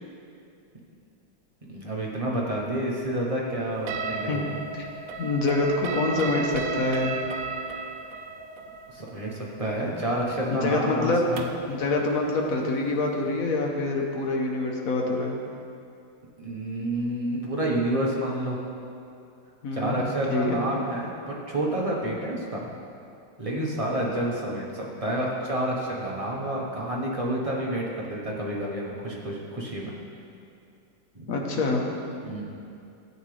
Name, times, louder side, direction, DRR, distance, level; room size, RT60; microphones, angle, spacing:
voice 1, 1.7-4.5 8.9-11.5 16.4-18.6 19.7-22.7 23.4-29.9 31.1-31.3 32.2-32.4, right 1 dB, 25° right, -3 dB, 0.7 m, -29 dB
sound 1, 3.9-11.7, right 4 dB, 75° right, 0.8 m, -34 dB
voice 2, 5.2-7.2 10.5-11.3 11.7-15.4 19.6-20.0 20.3-20.6 31.3-31.8, left 2 dB, 50° left, 1 dB, 1.2 m, -26 dB
12.5 x 8.1 x 3.3 m, 2.6 s
omnidirectional pair, 2.1 m